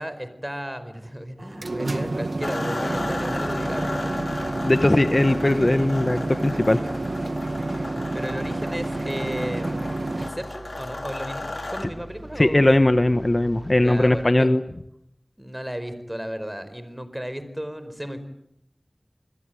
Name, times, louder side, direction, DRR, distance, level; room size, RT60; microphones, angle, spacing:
voice 1, 0.0-4.2 8.1-12.7 13.7-14.5 15.4-18.2, equal, 10° right, 12 dB, 4.6 m, -34 dB
sound 1, 1.4-10.3, right 2 dB, 85° right, 1.9 m, -29 dB
sound 2, 2.4-11.8, left 2 dB, 75° left, 4.4 m, -35 dB
sound 3, 2.9-14.3, right 2 dB, 50° right, 6.0 m, -44 dB
voice 2, 4.6-6.8 12.4-14.6, left 1 dB, 40° left, 10 dB, 1.3 m, -19 dB
27.5 x 21.5 x 9.3 m, 0.77 s
wide cardioid pair, 45°, 0 cm